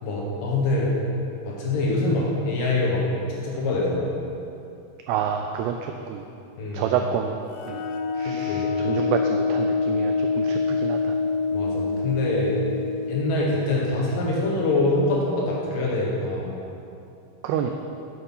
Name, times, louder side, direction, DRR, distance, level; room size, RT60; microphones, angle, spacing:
voice 1, 0.0-1.0 1.4-3.0 3.3-4.2 6.6-6.9 8.3-8.6 11.5-12.6 13.1-16.5, left 2 dB, 60° left, -3 dB, 2.5 m, -24 dB
voice 2, 5.1-6.2 6.7-7.4 7.7-7.8 8.2-11.2 17.4-17.7, right 8 dB, 90° right, 4 dB, 2.3 m, -28 dB
sound 1, 7.5-15.0, left 4 dB, 85° left, 3.1 m, -26 dB
10.0 x 8.3 x 5.5 m, 2.7 s
omnidirectional pair, 5.3 m